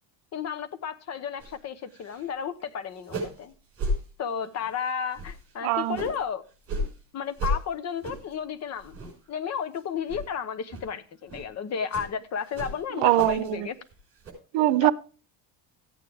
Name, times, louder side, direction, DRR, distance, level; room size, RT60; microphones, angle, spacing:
voice 1, 0.3-3.5 4.2-6.4 7.1-13.8 14.8-14.9, left 7 dB, 35° left, 0.9 m, -33 dB
sound 1, 1.4-1.6 1.9-2.3 2.6-2.7 3.0-3.4 3.8-4.0 4.4-4.7 5.1-6.2 6.6-6.9 7.4-7.6 8.0-8.3 8.8-9.3 9.6-9.8 10.1-10.3 10.7-10.9 11.3-11.5 11.9-12.1 12.5-13.5 13.8-14.3, equal, 30° right, 5.3 m, -33 dB
voice 2, 5.6-6.0 12.9-13.7 14.5-14.9, right 16 dB, 75° right, 0.8 m, -22 dB
15.5 x 9.0 x 3.5 m
cardioid pair, 155°, 45 cm